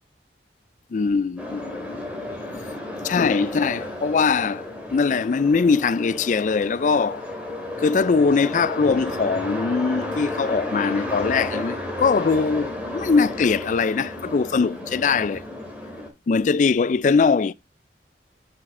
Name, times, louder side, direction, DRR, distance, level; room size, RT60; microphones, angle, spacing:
voice 1, 0.9-2.0 3.0-4.7 4.9-7.2 7.8-15.4 16.3-17.5, left 5 dB, 45° left, 0.3 m, -21 dB
sound 1, 1.4-16.1, left 1 dB, 10° right, 2.3 m, -32 dB
9.6 x 5.8 x 2.5 m
head